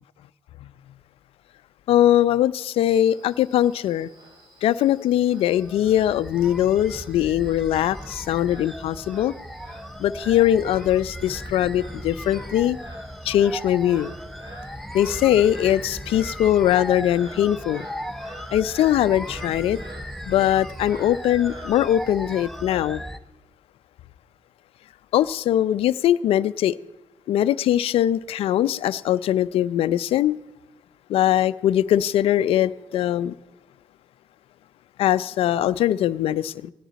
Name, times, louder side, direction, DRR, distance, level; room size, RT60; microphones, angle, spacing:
voice 1, 1.9-4.1 4.6-9.3 10.0-12.8 13.2-14.1 14.9-17.9 18.5-19.8 20.3-23.0 25.1-26.8 27.3-30.4 31.1-33.3 35.0-36.7, left 11 dB, 75° left, 0.6 m, -21 dB
Frog, 2.9-22.7, right 1 dB, 55° right, 7.3 m, -48 dB
sound 1, 5.5-23.2, equal, 5° left, 0.9 m, -37 dB
18.5 x 15.5 x 4.1 m
supercardioid pair, 55°, 10 cm